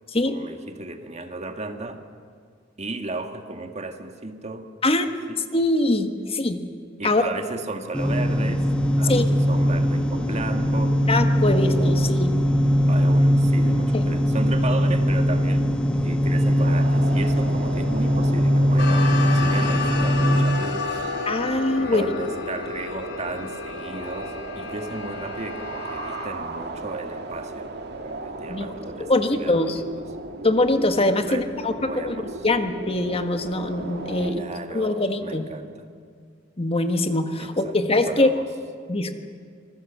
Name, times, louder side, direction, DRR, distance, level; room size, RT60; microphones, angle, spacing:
voice 1, 0.2-2.0 2.8-4.7 5.3-5.4 7.0-11.1 11.4-12.1 12.9-15.7 16.0-21.0 21.8-27.7 28.0-30.0 31.2-31.5 31.8-32.5 34.2-35.9 37.4-37.8 38.1-38.5, right 2 dB, 35° right, 6 dB, 1.7 m, -35 dB
voice 2, 5.5-6.6 7.0-7.2 9.1-9.3 11.1-12.4 13.6-14.0 21.3-22.1 28.5-28.7 29.0-29.8 30.4-34.4 34.7-35.4 36.6-38.3 38.9-39.1, left 2 dB, 30° left, 7 dB, 1.5 m, -23 dB
sound 1, 7.9-20.5, equal, 5° left, 1.5 m, -20 dB
sound 2, 16.6-34.3, right 2 dB, 60° right, 1.7 m, -36 dB
sound 3, 18.8-26.3, left 4 dB, 65° left, 3.0 m, -32 dB
26.5 x 20.0 x 7.3 m, 2.1 s
head